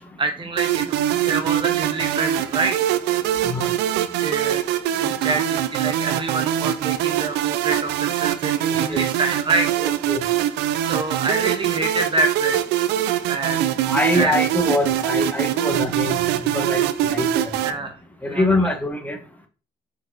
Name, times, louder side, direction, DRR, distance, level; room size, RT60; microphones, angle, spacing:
voice 1, 0.2-2.9 4.2-4.6 5.0-9.7 10.8-12.6 13.3-13.7 14.1-14.3 17.6-17.9 18.2-18.7, right 3 dB, 30° right, 6 dB, 1.1 m, -26 dB
sound 1, 0.6-17.7, right 11 dB, 90° right, 0.6 m, -23 dB
voice 2, 9.8-10.2 13.9-16.1 16.5-17.6 18.2-19.2, left 1 dB, 10° left, 5 dB, 1.5 m, -24 dB
6.2 x 5.3 x 4.0 m, 0.35 s
cardioid pair, 110°, 17 cm